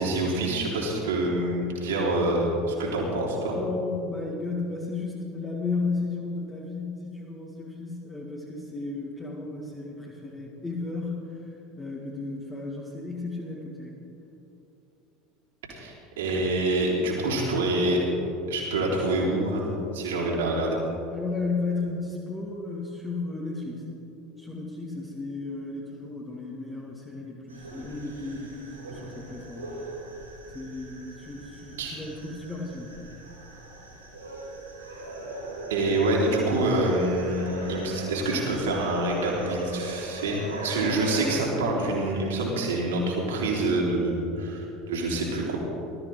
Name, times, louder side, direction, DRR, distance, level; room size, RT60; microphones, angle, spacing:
voice 1, 0.0-3.6 15.7-18.0 18.5-20.8 31.8-32.0 35.7-45.6, right 2 dB, 65° right, -3 dB, 3.3 m, -26 dB
voice 2, 3.5-11.5 11.8-13.9 20.2-20.4 21.1-23.9 24.4-29.9 30.5-33.0, left 3 dB, 15° left, -4 dB, 1.9 m, -34 dB
sound 1, 27.5-41.3, right 2 dB, 85° right, 3.9 m, -40 dB
19.5 x 13.5 x 3.8 m, 3.0 s
figure-of-eight pair, 70°, 0 cm